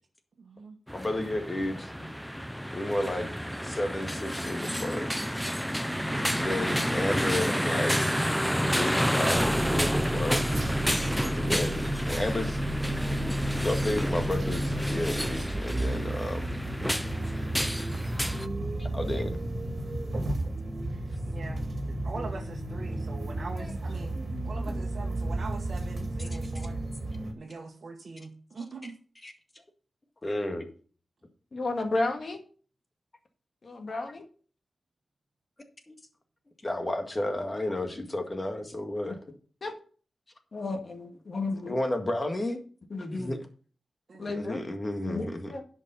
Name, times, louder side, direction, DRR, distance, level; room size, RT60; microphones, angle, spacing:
voice 1, 0.4-0.8 20.2-20.5 20.9-24.2 24.4-26.8 27.4-28.9 44.1-44.4, right 3 dB, 65° right, 0 dB, 1.4 m, -42 dB
voice 2, 0.9-1.9 2.7-3.3 3.6-5.1 6.3-8.0 8.7-10.4 11.3-12.6 13.6-16.5 17.4-17.5 18.2-18.3 18.8-19.4 23.6-23.7 29.2-29.3 30.2-30.7 35.9-36.0 36.6-39.2 41.7-42.6 43.2-43.4 44.3-45.5, left 1 dB, 25° left, 5 dB, 1.9 m, -32 dB
sound 1, 0.9-18.5, equal, ahead, 0.5 m, -30 dB
sound 2, 5.6-15.2, right 3 dB, 30° right, 1.4 m, -40 dB
sound 3, 9.3-27.3, right 1 dB, 50° right, 2.5 m, -33 dB
voice 3, 31.5-32.4 33.6-34.2 39.1-39.2 39.6-39.7 40.5-41.8 42.9-43.4 44.2-44.6 45.0-45.6, left 2 dB, 55° left, 5 dB, 1.8 m, -32 dB
10.5 x 5.3 x 5.6 m, 0.43 s
wide cardioid pair, 90°, 0 cm